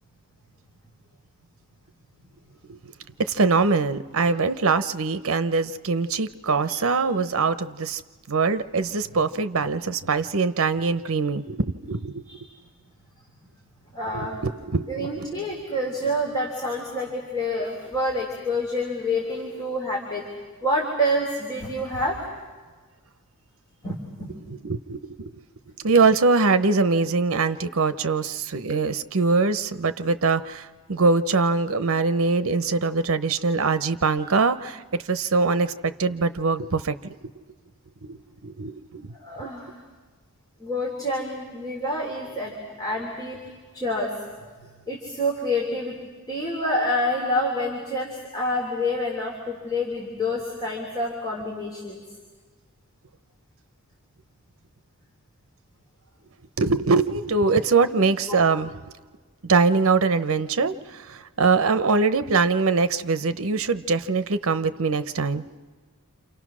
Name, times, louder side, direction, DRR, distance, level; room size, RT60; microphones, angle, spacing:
voice 1, 3.2-8.0 8.3-12.2 14.1-15.3 24.5-25.4 25.8-36.9 38.0-39.1 56.6-58.7 59.5-65.4, right 4 dB, 65° right, 12 dB, 0.8 m, -23 dB
voice 2, 13.9-14.4 14.9-20.3 20.6-22.2 23.8-24.3 39.2-39.8 40.6-44.1 44.6-46.0 46.3-52.0 58.3-58.4, left 1 dB, 20° left, -2 dB, 3.3 m, -28 dB
28.5 x 28.0 x 6.2 m, 1.4 s
head